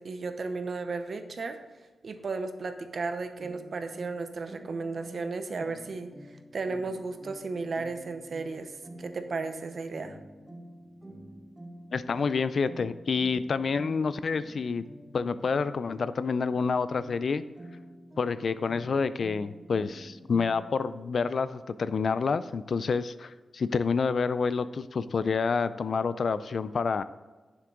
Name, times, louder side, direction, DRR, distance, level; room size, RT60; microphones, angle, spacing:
voice 1, 0.0-1.6 2.0-6.1 6.5-8.7 9.0-10.2, right 3 dB, 50° right, 8 dB, 0.8 m, -34 dB
sound 1, 3.4-20.8, right 1 dB, 15° right, 1.2 m, -48 dB
voice 2, 11.9-14.8 15.1-17.4 18.2-27.0, left 5 dB, 50° left, 14 dB, 0.3 m, -28 dB
9.5 x 7.2 x 3.8 m, 1.3 s
wide cardioid pair, 175°, 0 cm